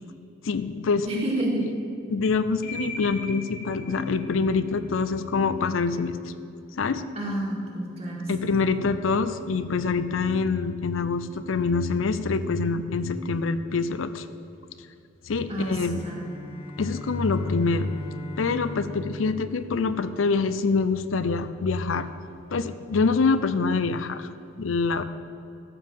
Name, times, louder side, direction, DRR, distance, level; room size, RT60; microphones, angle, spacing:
voice 1, 0.4-1.1 2.1-6.3 6.8-7.0 8.3-14.3 15.3-16.0 16.8-17.9 18.4-22.1 22.5-24.3 24.6-25.0, left 4 dB, 85° left, 12 dB, 0.5 m, -25 dB
voice 2, 1.0-1.6 7.2-8.5 15.5-16.2, right 1 dB, 30° right, -2 dB, 2.2 m, -29 dB
sound 1, 2.6-14.7, left 2 dB, 55° left, 1.9 m, -42 dB
Bowed string instrument, 15.8-20.7, left 1 dB, 30° left, 1.7 m, -41 dB
13.0 x 5.6 x 7.5 m, 2.7 s
head